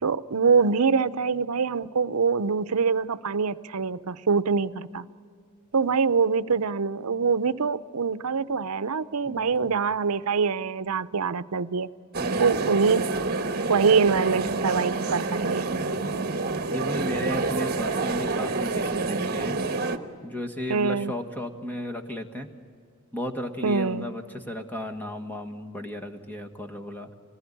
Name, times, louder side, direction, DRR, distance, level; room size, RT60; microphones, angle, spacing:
voice 1, 0.0-5.0 5.7-11.9 12.4-13.1 13.7-15.7 20.7-21.1 23.6-24.1, right 5 dB, 80° right, 16 dB, 0.7 m, -24 dB
voice 2, 9.2-9.7 12.2-12.6 15.9-16.2 16.7-19.6 20.2-22.5 23.1-27.1, equal, 10° left, 5 dB, 1.6 m, -34 dB
sound 1, 12.1-20.0, right 3 dB, 45° right, 1.3 m, -28 dB
25.5 x 19.0 x 9.9 m, 2.1 s
head